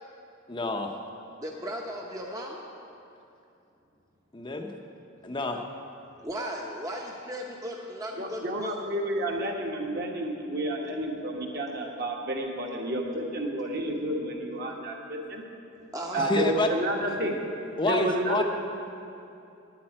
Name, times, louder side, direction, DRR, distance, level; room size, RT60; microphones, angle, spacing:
voice 1, 0.5-1.0 4.3-4.8 5.2-5.6 16.2-16.7 17.8-18.4, left 2 dB, 25° left, 3 dB, 0.6 m, -28 dB
voice 2, 1.4-2.6 6.2-8.8 15.9-16.3, equal, 15° right, -1 dB, 0.8 m, -36 dB
voice 3, 8.2-15.4 16.1-17.3 17.9-18.4, right 1 dB, 50° right, 0 dB, 1.4 m, -30 dB
9.6 x 8.6 x 8.6 m, 2.7 s
head